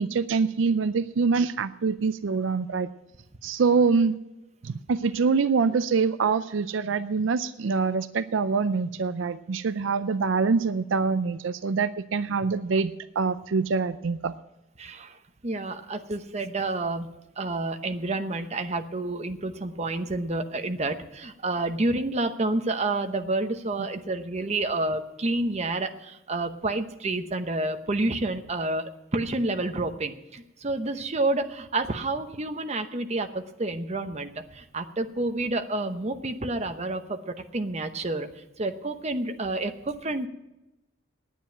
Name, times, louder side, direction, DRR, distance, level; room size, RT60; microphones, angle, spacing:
voice 1, 0.0-2.9 3.4-4.2 4.6-14.4, right 5 dB, 75° right, 13 dB, 0.4 m, -25 dB
voice 2, 14.8-17.1 17.4-40.3, right 2 dB, 35° right, 7 dB, 0.8 m, -29 dB
10.0 x 9.3 x 8.8 m, 0.93 s
head